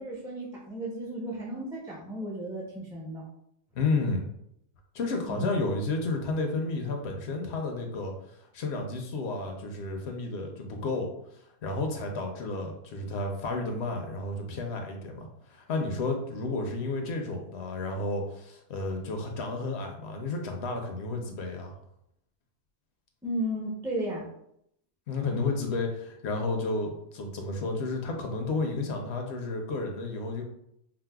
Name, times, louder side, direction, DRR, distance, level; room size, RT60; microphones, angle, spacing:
voice 1, 0.0-3.2 5.2-5.6 23.2-24.3, right 1 dB, 5° right, -4 dB, 0.4 m, -34 dB
voice 2, 3.7-4.2 4.9-11.1 11.6-21.8 25.1-30.4, left 3 dB, 70° left, 3 dB, 0.9 m, -32 dB
4.6 x 2.0 x 2.2 m, 0.74 s
omnidirectional pair, 1.2 m